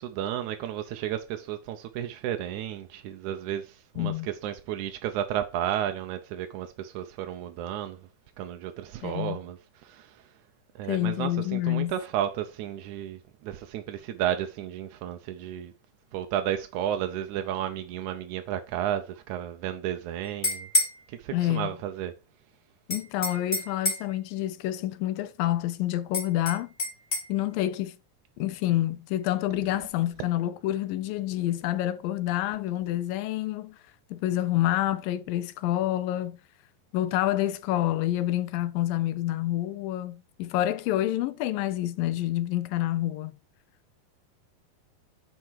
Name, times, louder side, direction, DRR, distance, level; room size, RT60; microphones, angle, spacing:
voice 1, 0.0-8.0 8.4-10.2 10.8-15.7 16.1-20.7 21.1-22.1, right 11 dB, 75° right, 1.8 m, -32 dB
voice 2, 4.0-4.3 9.0-9.4 10.8-11.9 21.3-21.8 22.9-26.7 27.3-28.0 28.4-33.8 34.1-36.4 36.9-43.3, left 14 dB, 80° left, 2.2 m, -28 dB
sound 1, 20.2-21.0 22.9-24.1 26.1-27.3, left 2 dB, 20° left, 1.6 m, -28 dB
9.6 x 4.6 x 4.8 m
omnidirectional pair, 4.3 m